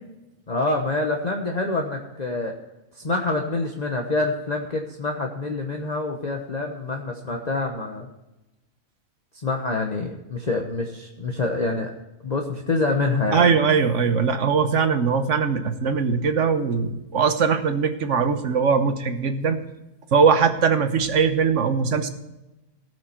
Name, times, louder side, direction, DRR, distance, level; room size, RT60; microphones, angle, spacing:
voice 1, 0.5-2.5 2.9-8.1 9.4-11.9 12.2-13.5, left 3 dB, 30° left, 1 dB, 1.2 m, -26 dB
voice 2, 13.3-19.6 20.1-22.1, right 5 dB, 60° right, 9 dB, 1.3 m, -21 dB
18.5 x 6.4 x 4.4 m, 0.98 s
omnidirectional pair, 1.5 m